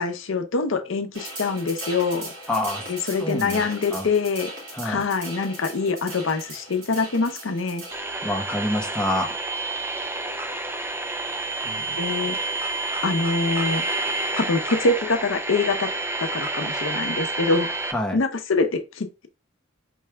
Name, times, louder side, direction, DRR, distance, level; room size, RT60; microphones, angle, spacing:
voice 1, 0.0-2.3 2.9-4.5 4.8-7.8 12.0-12.4 13.0-13.9 14.3-15.9 16.3-17.7 18.1-19.3, left 3 dB, 75° left, 0.7 m, -24 dB
sound 1, 1.1-8.0, right 2 dB, 80° right, 2.7 m, -38 dB
voice 2, 2.5-3.6 3.9-4.1 4.7-5.0 8.0-9.4 11.6-11.9 17.9-18.2, left 1 dB, 5° left, 0.9 m, -27 dB
sound 2, 7.9-17.9, right 2 dB, 10° right, 0.5 m, -29 dB
4.6 x 3.3 x 3.4 m
head